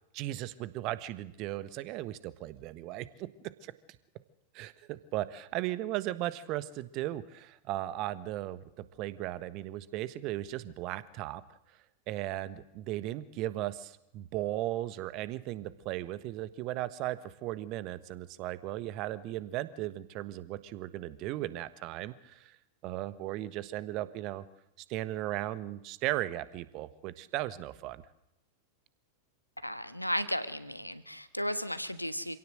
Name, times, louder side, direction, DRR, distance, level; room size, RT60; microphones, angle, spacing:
voice 1, 0.1-3.3 3.6-3.7 4.5-8.6 9.0-11.4 12.1-22.6 22.8-24.4 24.8-28.0, right 15 dB, 40° right, 14 dB, 1.4 m, -36 dB
voice 2, 29.6-32.4, equal, 90° left, 13 dB, 1.3 m, -34 dB
27.0 x 17.0 x 7.8 m, 0.85 s
figure-of-eight pair, 90°, 0 cm